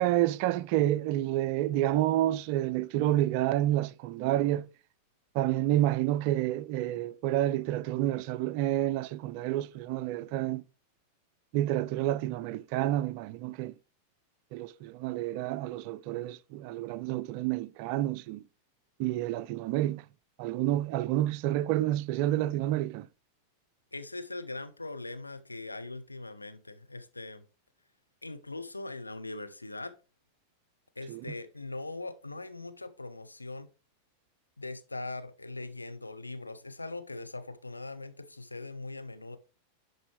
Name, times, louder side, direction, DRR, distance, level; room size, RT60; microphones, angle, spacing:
voice 1, 0.0-4.7 5.3-10.6 11.5-13.7 14.5-18.4 19.0-20.0 20.4-23.1 31.1-31.2, right 14 dB, 45° right, 0.3 m, -29 dB
voice 2, 23.9-27.4 28.2-29.9 31.0-33.7 34.6-39.4, left 2 dB, 80° left, 0.7 m, -41 dB
11.0 x 4.0 x 3.2 m
figure-of-eight pair, 90°, 0 cm